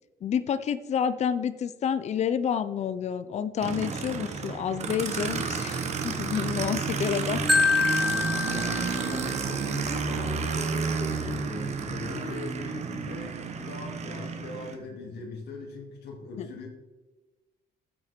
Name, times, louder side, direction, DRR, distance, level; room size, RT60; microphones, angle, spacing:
voice 1, 0.2-7.4 16.4-16.5, left 8 dB, 40° left, 14 dB, 0.6 m, -29 dB
Aircraft, 3.6-14.7, right 5 dB, 40° right, 1.2 m, -31 dB
Guitar, 6.3-8.4, right 2 dB, 80° right, 2.7 m, -46 dB
voice 2, 7.1-7.7 8.4-16.7, left 3 dB, 80° left, 0 dB, 2.9 m, -40 dB
Marimba xylophone, 7.5-9.6, left 4 dB, ahead, 0.5 m, -26 dB
13.5 x 7.4 x 4.5 m, 1.2 s
cardioid pair, 160°, 17 cm